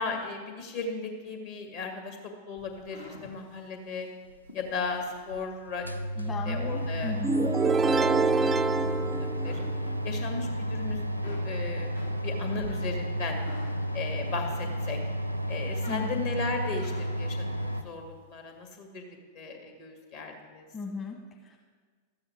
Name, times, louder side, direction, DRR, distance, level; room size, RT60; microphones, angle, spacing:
voice 1, 0.0-4.1 4.5-5.9 6.2-7.8 8.1-9.6 10.0-11.9 12.2-13.4 13.9-15.0 15.5-19.1 19.3-20.7, left 4 dB, 50° left, 3 dB, 2.0 m, -36 dB
sound 1, 2.6-6.0 6.4-7.5 8.0-9.0 9.3-10.6 10.9-14.9 15.4-17.3, left 3 dB, 75° left, 1.7 m, -50 dB
sound 2, 4.6-4.7 5.3-5.4 5.7-17.8, equal, 90° right, 0.5 m, -32 dB
voice 2, 6.2-7.5 15.9-16.2 20.7-21.6, left 4 dB, 25° left, 0 dB, 1.1 m, -37 dB
sound 3, 7.2-10.1, right 4 dB, 15° right, 0.3 m, -26 dB
13.0 x 8.8 x 4.5 m, 1.5 s
figure-of-eight pair, 90°, 0 cm